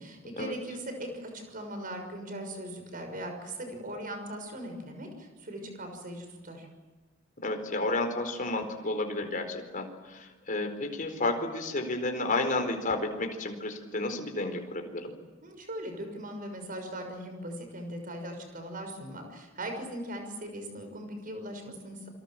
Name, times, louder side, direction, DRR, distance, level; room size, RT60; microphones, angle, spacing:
voice 1, 0.0-6.7 15.4-22.1, right 1 dB, 45° right, 5 dB, 6.3 m, -39 dB
voice 2, 7.4-15.1, left 2 dB, 40° left, 4 dB, 4.4 m, -31 dB
28.0 x 24.0 x 7.7 m, 1.3 s
head